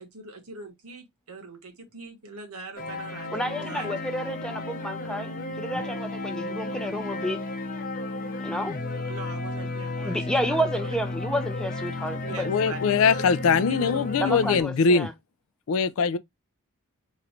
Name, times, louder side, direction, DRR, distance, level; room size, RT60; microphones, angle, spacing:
voice 1, 0.0-3.9 8.8-10.9 12.2-13.2 13.7-14.4, right 3 dB, 80° right, 1.2 m, -42 dB
sound 1, 2.8-14.6, left 2 dB, 40° left, 0.7 m, -33 dB
voice 2, 3.3-7.4 8.4-8.8 10.0-12.5 14.2-15.1, equal, 5° left, 0.5 m, -30 dB
voice 3, 12.4-15.1 15.7-16.2, left 5 dB, 65° left, 0.4 m, -22 dB
3.1 x 2.5 x 4.3 m
head